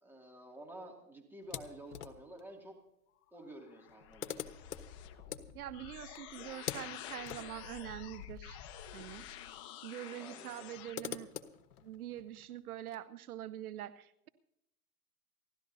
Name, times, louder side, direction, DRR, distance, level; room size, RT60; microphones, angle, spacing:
voice 1, 0.0-2.7 3.3-4.3 10.1-10.7, right 1 dB, 5° right, 1 dB, 2.5 m, -51 dB
sound 1, 1.4-2.4 3.5-3.6 3.8-9.3 9.6-9.7 10.5-13.0, left 9 dB, 80° left, 1.4 m, -46 dB
sound 2, 3.3-11.0, left 10 dB, 30° left, 1.0 m, -49 dB
voice 2, 5.5-8.6 8.9-9.3 9.8-11.3 11.8-14.3, right 12 dB, 70° right, 15 dB, 0.9 m, -44 dB
29.5 x 12.0 x 2.7 m, 0.80 s
hypercardioid pair, 140°, 45 cm